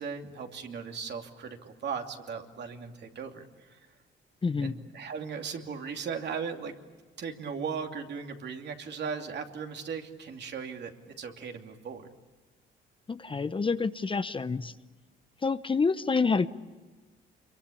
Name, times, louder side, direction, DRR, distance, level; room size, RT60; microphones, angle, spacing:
voice 1, 0.0-3.9 4.6-6.7 7.2-10.9 11.2-12.1, right 6 dB, 60° right, 4 dB, 2.7 m, -37 dB
voice 2, 4.4-4.7 13.1-14.7 15.4-16.5, left 4 dB, 25° left, 12 dB, 0.8 m, -27 dB
26.0 x 23.5 x 8.6 m, 1.3 s
cardioid pair, 90°, 20 cm